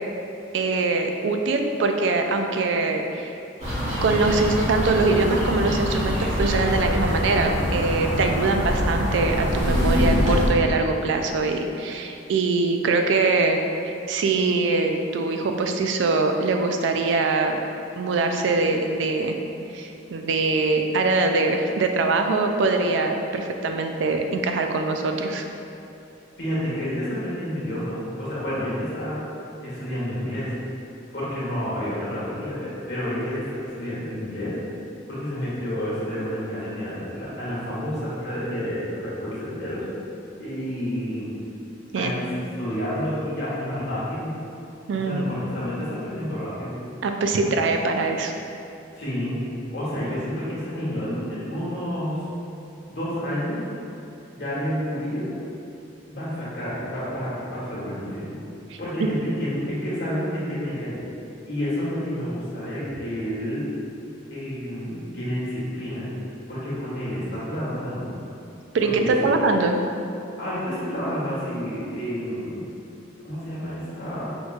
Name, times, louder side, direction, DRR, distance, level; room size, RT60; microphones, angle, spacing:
voice 1, 0.5-3.3 4.0-13.6 13.8-17.6 18.0-19.4 19.7-25.5 41.9-42.1 44.9-45.3 47.0-48.3 58.7-58.8 68.7-69.8, right 3 dB, 75° right, 4 dB, 0.4 m, -23 dB
sound 1, 3.6-10.5, equal, 35° right, 1.3 m, -24 dB
voice 2, 26.4-29.3 29.6-30.5 31.1-34.6 35.1-39.8 40.4-41.3 41.9-44.3 44.9-46.7 48.9-49.4 49.7-52.2 52.9-53.6 54.3-55.3 56.1-58.3 58.8-61.0 61.4-63.6 64.3-66.1 66.5-68.1 69.0-69.3 70.4-72.6 73.2-74.3, equal, 65° left, -9 dB, 1.5 m, -29 dB
6.2 x 3.1 x 2.4 m, 2.8 s
head